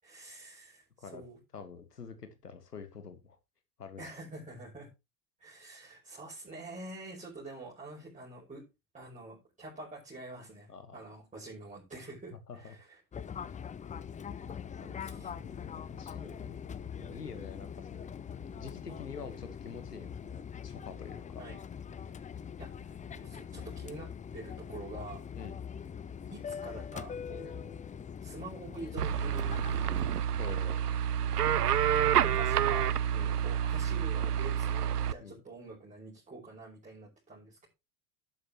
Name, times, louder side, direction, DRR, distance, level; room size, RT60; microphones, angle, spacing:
voice 1, 0.0-1.4 4.0-4.9 5.4-8.6 8.9-13.0 15.0-15.3 21.4-21.6 22.6-25.2 26.3-27.8 28.2-30.2 31.9-32.9 33.2-37.7, right 2 dB, 15° right, -5 dB, 5.7 m, -47 dB
voice 2, 1.5-3.4 3.8-4.1 10.7-11.0 12.3-12.7 13.4-13.5 14.4-21.4 22.0-22.1 25.3-25.6 27.5-27.6 30.4-30.8 33.1-33.4 35.2-35.4, left 5 dB, 90° left, 10 dB, 1.7 m, -47 dB
Fixed-wing aircraft airplane, 13.1-30.0, left 7 dB, 15° left, 0.6 m, -42 dB
sound 1, 29.0-35.1, right 9 dB, 90° right, 0.6 m, -28 dB
11.5 x 10.5 x 3.1 m, 0.24 s
figure-of-eight pair, 75°, 45 cm